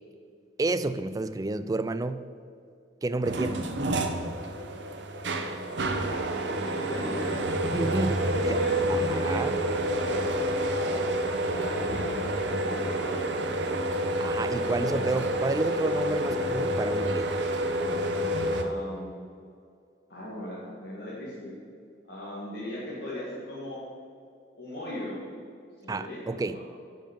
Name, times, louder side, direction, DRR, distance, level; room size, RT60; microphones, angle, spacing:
voice 1, 0.6-2.3 3.0-3.6 7.7-8.6 8.9-9.6 14.2-17.4 25.9-26.6, right 2 dB, 20° right, 12 dB, 0.3 m, -30 dB
sound 1, 3.2-18.6, right 1 dB, 80° right, 0.8 m, -28 dB
voice 2, 5.2-5.5 6.0-6.3 6.6-7.4 8.3-9.5 9.9-10.9 11.4-13.7 14.7-15.2 18.5-19.1 20.1-21.5 22.1-23.8 24.6-25.2 25.8-26.6, left 1 dB, 65° left, -8 dB, 2.1 m, -38 dB
10.5 x 5.5 x 6.9 m, 2.3 s
head